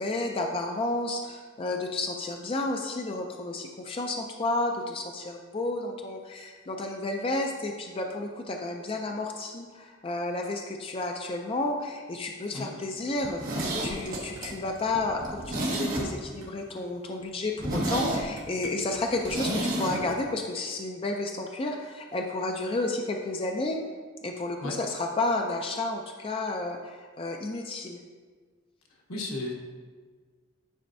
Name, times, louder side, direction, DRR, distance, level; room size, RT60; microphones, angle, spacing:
voice 1, 0.0-13.4 13.8-23.8 24.2-28.0, left 2 dB, 25° left, 2 dB, 0.3 m, -31 dB
Zipper (clothing), 13.2-16.5 16.8-16.9 17.2-17.3 17.6-20.0 20.3-20.4, right 1 dB, 40° right, 1.3 m, -31 dB
voice 2, 29.1-29.5, left 2 dB, 90° left, -1 dB, 1.2 m, -33 dB
9.7 x 4.3 x 2.6 m, 1.5 s
head